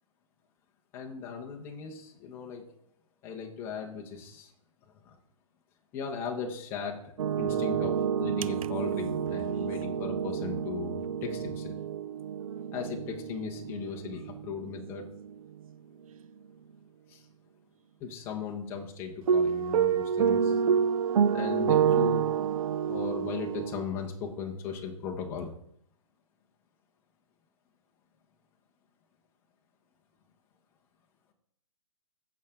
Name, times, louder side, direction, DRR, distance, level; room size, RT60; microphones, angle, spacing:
voice 1, 0.9-2.6 3.2-4.5 4.9-5.2 5.9-11.7 12.7-15.0 17.1-17.2 18.0-20.6 21.3-22.3 22.9-25.5, left 6 dB, 10° left, 1 dB, 0.9 m, -38 dB
sound 1, 7.2-15.3 19.3-23.8, right 7 dB, 75° right, 0.4 m, -28 dB
14.5 x 5.8 x 3.7 m, 0.68 s
hypercardioid pair, 175°, 18 cm